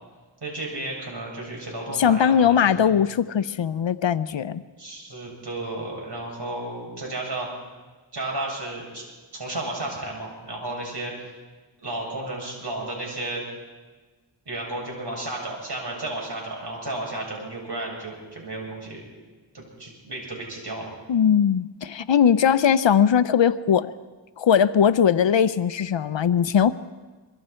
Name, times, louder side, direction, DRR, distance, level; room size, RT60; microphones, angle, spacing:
voice 1, 0.4-2.9 4.8-7.5 8.1-9.0 9.3-11.3 11.8-13.4 14.5-19.0 19.5-20.9, right 2 dB, 55° right, -1 dB, 7.8 m, -33 dB
voice 2, 2.0-4.6 21.1-23.9 24.4-26.7, left 8 dB, 70° left, 14 dB, 0.8 m, -20 dB
25.0 x 23.0 x 4.5 m, 1.3 s
cardioid pair, 60°, 47 cm